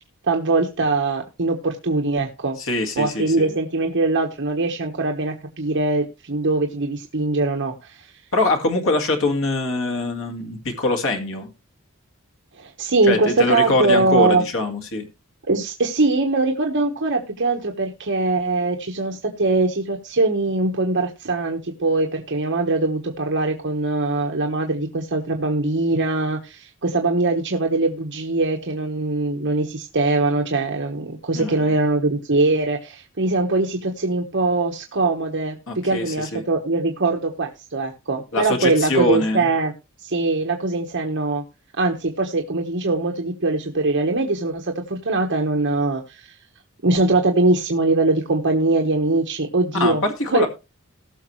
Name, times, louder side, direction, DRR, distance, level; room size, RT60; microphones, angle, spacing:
voice 1, 0.2-2.6 3.0-8.1 12.6-14.4 15.5-39.7 40.0-41.4 41.8-46.3 46.8-50.0 50.3-50.5, right 3 dB, 60° right, 1.3 m, -22 dB
voice 2, 2.6-3.5 8.3-11.5 13.1-15.1 31.3-31.7 35.7-36.4 38.3-39.5 49.7-50.5, left 2 dB, 65° left, 2.0 m, -23 dB
19.0 x 6.4 x 3.1 m
head